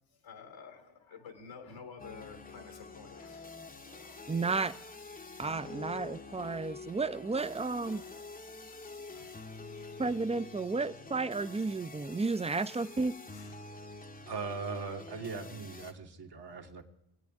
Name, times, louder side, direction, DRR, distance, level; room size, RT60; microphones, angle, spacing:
voice 1, 0.1-4.3 5.8-6.6 7.7-10.3 10.6-10.9 11.7-11.9 12.6-13.0 13.3-13.7 14.1-14.2 14.6-14.8 16.5-16.8, left 5 dB, 80° left, 1.6 m, -53 dB
sound 1, 2.0-15.9, left 3 dB, 20° left, 0.7 m, -47 dB
voice 2, 4.3-4.7 5.4-8.0 10.0-13.1, right 3 dB, 15° right, 0.4 m, -32 dB
voice 3, 14.3-16.8, right 4 dB, 55° right, 1.4 m, -39 dB
22.0 x 8.4 x 3.5 m
supercardioid pair, 45°, 46 cm